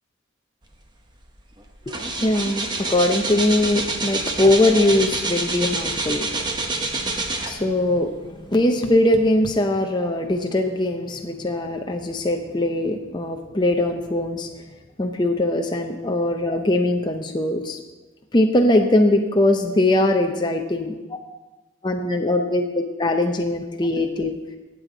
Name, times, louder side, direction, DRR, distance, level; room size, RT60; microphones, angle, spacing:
sound 1, 1.1-1.3 1.6-7.9 8.4-8.5, right 2 dB, 20° right, 0.9 m, -27 dB
voice 1, 1.9-6.3 7.4-8.1 8.4-14.5 15.0-17.8 18.3-21.0 21.8-24.4, left 1 dB, 20° left, 3 dB, 0.6 m, -21 dB
17.0 x 7.7 x 3.9 m, 1.2 s
head